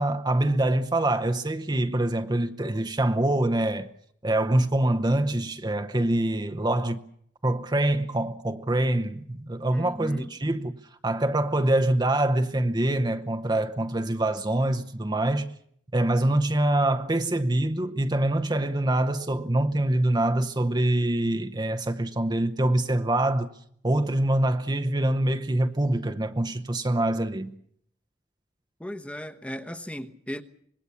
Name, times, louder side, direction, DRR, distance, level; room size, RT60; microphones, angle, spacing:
voice 1, 0.0-3.9 4.2-7.0 7.4-10.7 11.0-15.5 15.9-23.5 23.8-27.5, right 1 dB, 25° right, 0.9 m, -25 dB
voice 2, 9.7-10.3 28.8-30.4, equal, 5° left, 1.1 m, -36 dB
25.5 x 20.5 x 7.1 m
head